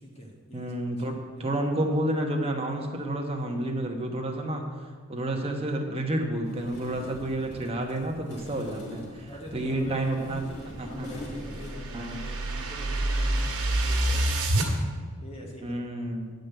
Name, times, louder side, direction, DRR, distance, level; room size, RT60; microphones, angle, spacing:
voice 1, 0.0-0.8 1.1-1.6 9.3-10.4 10.9-14.4 15.2-15.8, equal, 30° left, -2 dB, 1.8 m, -42 dB
voice 2, 0.5-1.1 1.4-4.6 5.1-10.4 10.8-11.1 11.9-12.2 15.6-16.3, right 1 dB, 25° right, 2 dB, 1.2 m, -30 dB
sound 1, 6.4-11.7, left 1 dB, 80° left, 2.7 m, -44 dB
sound 2, 10.7-14.7, right 1 dB, 85° right, 1.6 m, -28 dB
9.4 x 5.2 x 8.0 m, 1.5 s
head